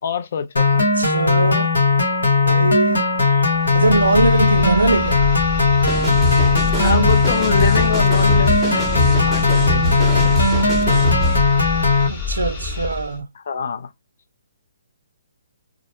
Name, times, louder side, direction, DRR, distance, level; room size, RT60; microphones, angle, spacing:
voice 1, 0.0-0.7 3.3-3.5 6.8-10.4 13.3-13.9, left 6 dB, 60° left, 0.5 m, -25 dB
sound 1, 0.6-12.1, left 3 dB, 80° left, 1.2 m, -18 dB
voice 2, 0.7-1.7 2.4-3.1 3.7-5.3 12.1-13.3, right 3 dB, 90° right, 0.3 m, -21 dB
sound 2, 3.5-13.2, left 4 dB, 35° left, 1.0 m, -28 dB
sound 3, 5.9-11.4, equal, 10° right, 0.8 m, -23 dB
2.5 x 2.0 x 2.8 m
hypercardioid pair, 140°, 0 cm